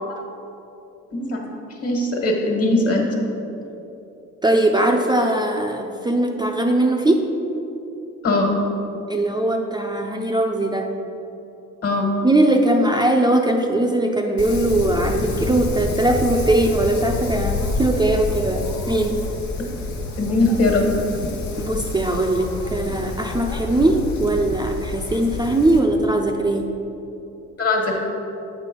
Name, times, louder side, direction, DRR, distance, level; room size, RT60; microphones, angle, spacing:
voice 1, 1.1-1.5 1.8-3.1 8.2-8.6 11.8-12.1 20.2-20.8 27.6-28.0, left 2 dB, 50° left, 1 dB, 1.5 m, -20 dB
voice 2, 4.4-7.2 9.1-10.9 12.2-19.2 21.6-26.7, right 1 dB, 15° right, 1 dB, 0.5 m, -20 dB
Wind, 14.4-25.8, left 3 dB, 70° left, 1.1 m, -28 dB
8.1 x 4.1 x 5.3 m, 3.0 s
cardioid pair, 90°, 30 cm